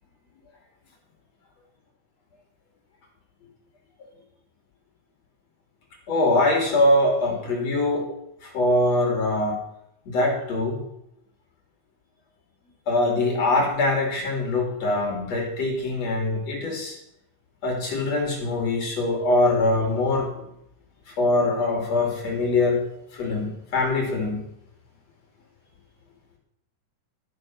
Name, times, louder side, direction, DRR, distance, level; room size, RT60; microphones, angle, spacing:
voice 1, 6.1-8.1 8.4-9.6 10.1-10.8 12.9-17.0 17.6-20.3 21.1-22.8 23.1-24.4, left 2 dB, 45° left, 0 dB, 3.6 m, -23 dB
13.5 x 7.5 x 6.4 m, 0.77 s
omnidirectional pair, 4.4 m